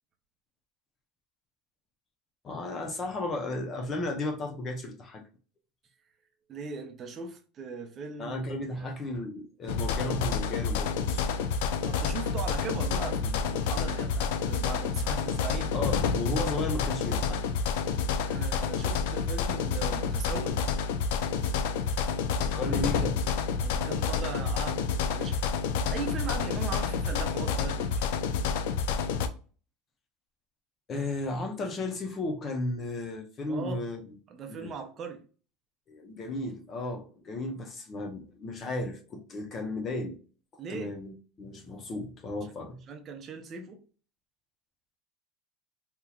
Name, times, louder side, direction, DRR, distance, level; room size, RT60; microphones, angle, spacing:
voice 1, 2.4-5.2 8.2-11.5 15.7-17.6 22.4-23.2 30.9-34.0 34.5-34.7 35.9-40.2 40.7-42.8, left 2 dB, 25° left, 0.7 m, -34 dB
voice 2, 6.5-8.4 8.8-8.9 11.8-15.7 18.2-20.6 23.6-25.4 25.9-28.1 33.5-33.8 34.3-35.2 40.6-41.0 42.9-43.8, right 5 dB, 25° right, 0.6 m, -39 dB
sound 1, 9.7-29.3, left 5 dB, 70° left, 0.4 m, -29 dB
3.5 x 2.9 x 2.3 m
cardioid pair, 170°, 0 cm